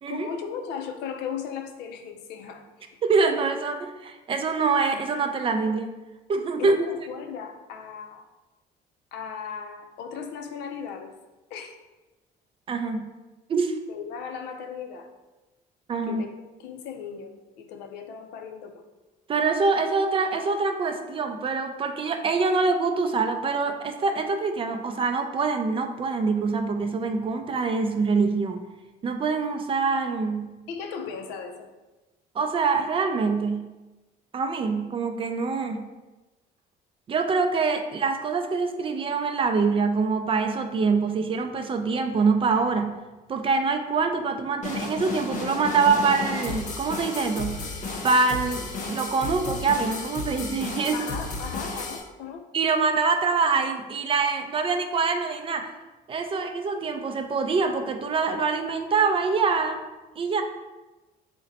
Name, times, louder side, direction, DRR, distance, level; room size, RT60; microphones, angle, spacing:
voice 1, 0.1-3.0 6.6-8.3 9.1-11.1 11.5-11.8 13.9-15.1 16.1-16.3 16.6-18.8 30.7-31.7 50.9-52.4 56.3-56.5, left 6 dB, 90° left, 5 dB, 0.5 m, -37 dB
voice 2, 3.0-5.9 6.3-6.8 12.7-13.1 13.5-13.7 15.9-16.2 19.3-28.6 29.0-30.5 32.3-33.7 34.3-35.8 37.1-42.9 43.3-47.6 48.0-51.1 52.5-55.7 56.1-59.8 60.2-60.4, right 4 dB, 30° right, 6 dB, 0.4 m, -25 dB
sound 1, 44.6-52.0, left 3 dB, 45° left, 0.8 m, -33 dB
3.8 x 2.1 x 4.0 m, 1.1 s
cardioid pair, 110°, 17 cm